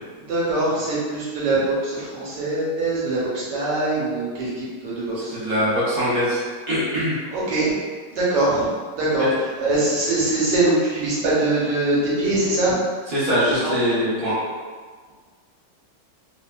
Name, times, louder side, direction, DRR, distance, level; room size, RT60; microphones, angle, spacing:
voice 1, 0.3-5.3 7.3-7.7 8.1-9.3 9.6-12.8 13.5-13.7, right 2 dB, 85° right, -8 dB, 1.6 m, -22 dB
voice 2, 5.3-6.4 6.7-7.1 13.1-14.3, equal, 45° right, -10 dB, 0.7 m, -22 dB
3.1 x 2.5 x 2.2 m, 1.5 s
omnidirectional pair, 1.9 m